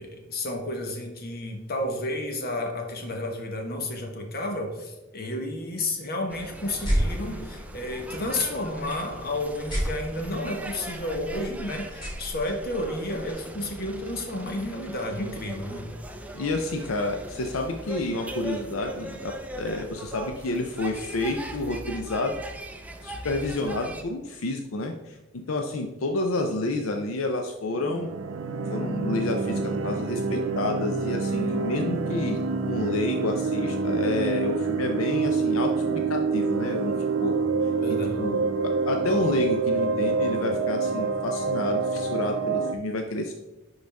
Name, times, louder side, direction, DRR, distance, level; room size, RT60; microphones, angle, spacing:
voice 1, 0.0-15.9 37.8-38.3, left 1 dB, 50° left, 3 dB, 1.2 m, -31 dB
sound 1, 6.3-24.0, right 1 dB, 5° right, 0.5 m, -40 dB
sound 2, 6.6-13.3, equal, 20° left, 2.4 m, -33 dB
voice 2, 16.3-22.3 23.0-28.1 28.7-35.7 36.1-36.9 37.2-37.3 37.6-43.3, left 2 dB, 80° left, 4 dB, 0.6 m, -29 dB
sound 3, 27.8-42.7, right 4 dB, 70° right, 0.5 m, -27 dB
10.5 x 4.0 x 3.4 m, 1.1 s
head